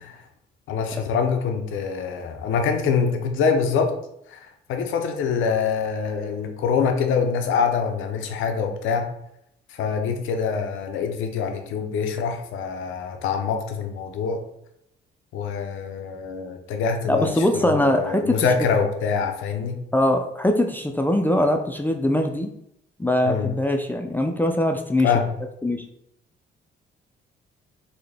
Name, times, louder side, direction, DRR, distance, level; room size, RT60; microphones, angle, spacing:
voice 1, 0.7-3.9 4.3-9.1 9.7-14.4 15.3-19.8 23.2-23.5 25.0-25.3, left 6 dB, 85° left, 5 dB, 0.6 m, -25 dB
voice 2, 17.1-18.5 19.9-22.5 23.0-25.2 25.6-25.8, left 1 dB, 10° left, 4 dB, 0.3 m, -22 dB
3.8 x 2.1 x 3.3 m, 0.76 s
cardioid pair, 90°, 20 cm